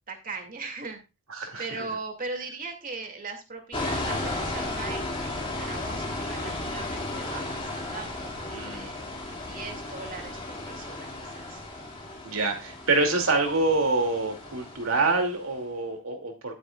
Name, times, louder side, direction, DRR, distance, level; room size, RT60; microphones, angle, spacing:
voice 1, 0.1-1.0 1.6-9.2 9.5-11.6, right 4 dB, 40° right, 4 dB, 2.4 m, -39 dB
voice 2, 1.4-1.9 8.5-8.9 12.2-16.6, right 3 dB, 70° right, 3 dB, 2.6 m, -26 dB
sound 1, 3.7-15.5, left 2 dB, 25° left, 2.3 m, -35 dB
11.5 x 9.8 x 2.4 m, 0.27 s
head